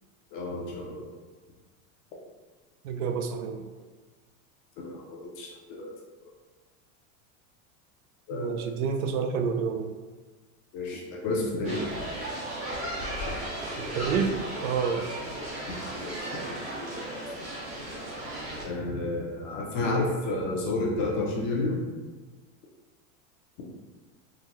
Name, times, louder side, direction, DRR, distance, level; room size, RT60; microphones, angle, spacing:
voice 1, 0.3-1.1 4.8-5.9 8.3-8.7 10.7-11.8 15.9-16.5 16.8-16.9 18.6-21.8, left 2 dB, 35° left, -2 dB, 0.5 m, -31 dB
voice 2, 2.8-3.6 8.3-9.9 13.8-15.1, right 6 dB, 80° right, 6 dB, 0.5 m, -29 dB
sound 1, 11.6-18.6, right 1 dB, 20° right, 0.4 m, -35 dB
3.9 x 2.1 x 2.9 m, 1.3 s
supercardioid pair, 165°, 43 cm